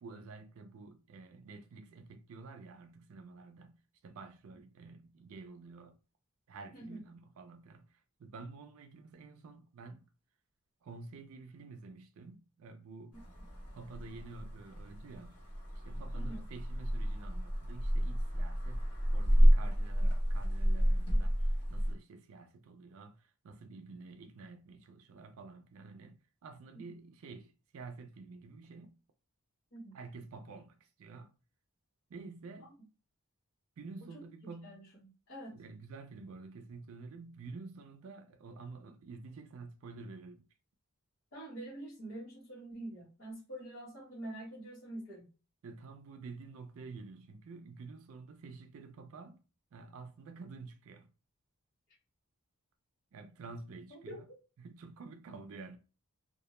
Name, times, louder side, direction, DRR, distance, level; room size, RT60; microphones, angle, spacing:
voice 1, 0.0-6.0 6.5-10.1 10.8-13.2 13.7-15.4 15.8-18.8 19.1-29.0 29.9-31.3 32.1-32.7 33.8-34.8 35.5-40.5 45.6-49.4 49.7-51.1 53.1-54.2 54.6-55.8, right 4 dB, 70° right, 0.4 m, -50 dB
sound 1, 13.1-21.9, equal, 85° left, 1.0 m, -30 dB
voice 2, 16.1-16.4 29.7-30.0 34.0-34.3 34.6-35.6 41.3-45.3 54.1-54.2, right 1 dB, 60° left, 1.1 m, -46 dB
2.2 x 2.1 x 2.9 m
head